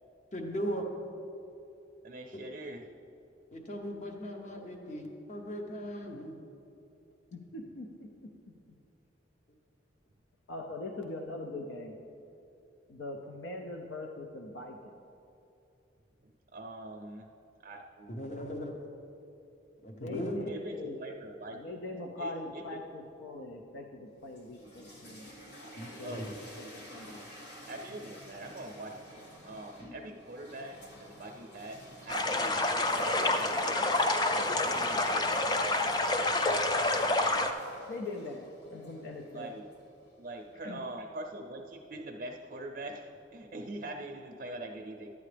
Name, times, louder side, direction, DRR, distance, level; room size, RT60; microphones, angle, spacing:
voice 1, 0.3-0.9 3.5-6.4 18.1-18.7 19.8-20.4 25.8-26.3, equal, 40° left, 2 dB, 0.9 m, -38 dB
voice 2, 2.0-2.9 16.2-17.3 17.6-18.2 20.5-21.6 22.2-22.8 26.0-26.3 27.7-34.1 34.6-35.6 39.3-39.7 40.2-45.1, right 1 dB, 45° right, 2 dB, 0.5 m, -43 dB
voice 3, 7.3-8.3 10.5-12.0 12.9-15.0 20.0-21.0 21.5-25.3 26.0-27.2 37.9-39.5 40.6-40.8, left 2 dB, 80° left, 2 dB, 0.6 m, -42 dB
sound 1, 24.2-40.2, equal, 60° left, 1.9 m, -51 dB
sound 2, 32.1-37.5, left 2 dB, 20° left, 0.4 m, -28 dB
12.0 x 8.3 x 3.3 m, 2.7 s
head